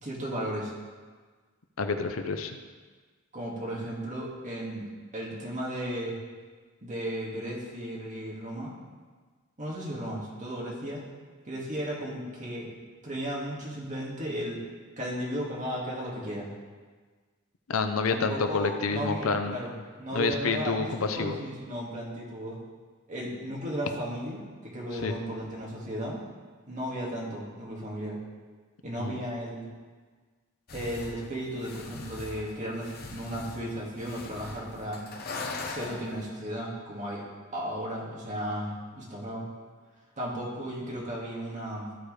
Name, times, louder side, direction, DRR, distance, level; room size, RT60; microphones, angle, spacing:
voice 1, 0.0-0.7 3.3-6.2 6.8-8.7 9.6-11.0 11.4-12.7 13.0-14.6 15.0-16.5 18.1-19.7 20.0-22.6 23.1-26.2 26.7-28.2 28.8-29.7 30.7-35.0 35.7-37.2 37.5-39.5 40.2-41.9, equal, 35° right, -4 dB, 2.0 m, -35 dB
voice 2, 1.8-2.6 17.7-19.6 20.1-21.4 25.0-25.1 29.0-29.2, left 4 dB, 80° left, 7 dB, 0.7 m, -28 dB
sound 1, 30.7-36.3, left 3 dB, 50° left, 0.9 m, -41 dB
14.0 x 4.7 x 3.3 m, 1.4 s
head